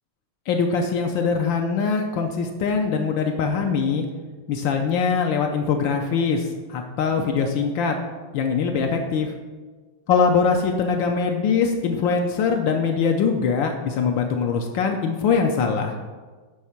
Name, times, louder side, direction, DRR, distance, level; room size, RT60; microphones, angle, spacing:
voice 1, 0.5-4.0 4.5-8.0 8.3-9.3 10.1-16.0, left 5 dB, 80° left, 3 dB, 1.4 m, -22 dB
9.5 x 3.7 x 5.8 m, 1.4 s
omnidirectional pair, 2.1 m